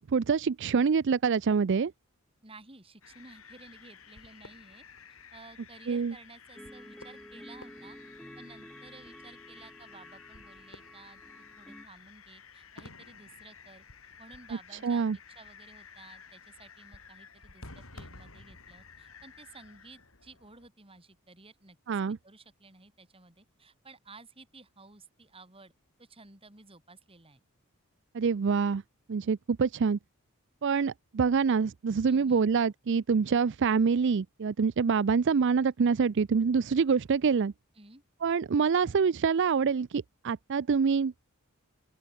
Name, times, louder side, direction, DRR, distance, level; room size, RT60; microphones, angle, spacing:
voice 1, 0.1-1.9 5.9-6.1 14.8-15.2 21.9-22.2 28.1-28.8 29.1-30.0 30.6-37.5 38.2-41.1, right 5 dB, 55° right, 0.4 m, -26 dB
voice 2, 2.4-4.8 5.3-13.8 14.2-25.7 26.0-27.4 32.1-32.4 37.7-38.0, right 3 dB, 25° right, 4.0 m, -54 dB
sound 1, 3.0-20.7, left 5 dB, 65° left, 5.4 m, -52 dB
sound 2, 6.6-11.9, equal, ahead, 2.1 m, -50 dB
open air
head